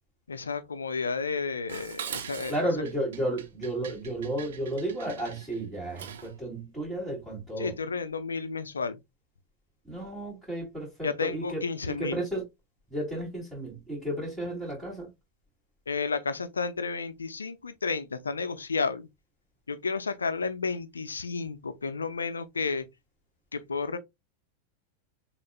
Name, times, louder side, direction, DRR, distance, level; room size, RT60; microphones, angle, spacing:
voice 1, 0.3-2.5 7.6-9.0 11.0-12.2 15.9-19.1 19.7-22.9 23.5-24.0, left 4 dB, 75° left, 0.5 m, -32 dB
Dishes pots and pans, 1.7-6.4, right 8 dB, 60° right, 0.6 m, -42 dB
voice 2, 2.5-7.8 9.8-12.4 12.9-15.1, right 1 dB, ahead, 2.7 m, -33 dB
6.2 x 2.5 x 2.2 m
figure-of-eight pair, 90°, 0 cm